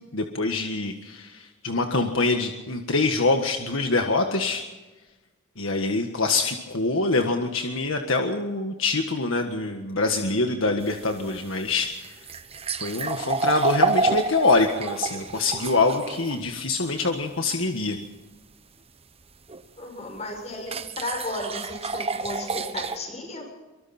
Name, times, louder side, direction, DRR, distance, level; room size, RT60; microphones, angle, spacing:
voice 1, 0.1-4.6 5.6-12.1 12.8-18.0, left 3 dB, 70° left, 4 dB, 1.7 m, -25 dB
sound 1, 10.8-16.4 19.5-19.6 20.7-23.0, right 3 dB, 30° right, 1.3 m, -28 dB
voice 2, 19.8-23.5, left 2 dB, 35° left, 3 dB, 6.8 m, -34 dB
24.5 x 24.5 x 4.4 m, 1.2 s
head